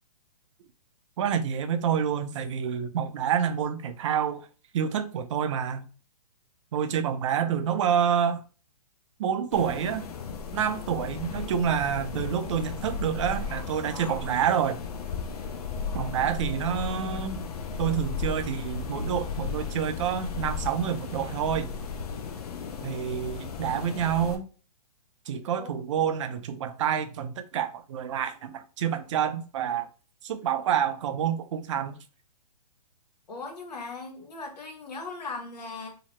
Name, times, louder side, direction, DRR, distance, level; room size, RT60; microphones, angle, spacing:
voice 1, 1.2-4.5 4.7-5.9 6.7-8.4 9.2-10.1 10.5-14.8 15.9-17.5 17.8-21.7 22.8-24.5 25.3-29.9 30.2-32.0, right 8 dB, 50° right, 0.4 m, -28 dB
sound 1, 9.5-24.4, left 5 dB, 70° left, 0.6 m, -35 dB
voice 2, 33.3-35.9, left 3 dB, 90° left, 1.1 m, -38 dB
2.8 x 2.0 x 3.1 m
hypercardioid pair, 145°, 20 cm